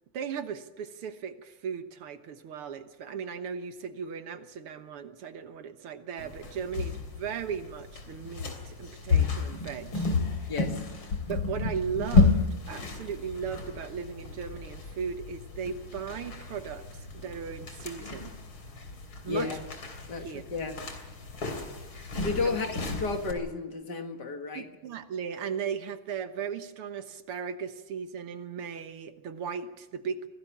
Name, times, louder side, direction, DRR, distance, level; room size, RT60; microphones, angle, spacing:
voice 1, 0.1-10.1 11.3-12.4 12.7-18.3 19.2-19.6 20.2-20.4 22.4-22.6 24.6-30.3, right 7 dB, 85° right, 9 dB, 2.2 m, -37 dB
sound 1, 6.2-23.3, left 4 dB, 65° left, 4.1 m, -31 dB
voice 2, 10.5-10.8 19.3-19.6 20.1-20.8 22.2-24.7, left 4 dB, 50° left, 5 dB, 2.3 m, -32 dB
24.5 x 17.5 x 7.3 m, 1.0 s
omnidirectional pair, 2.4 m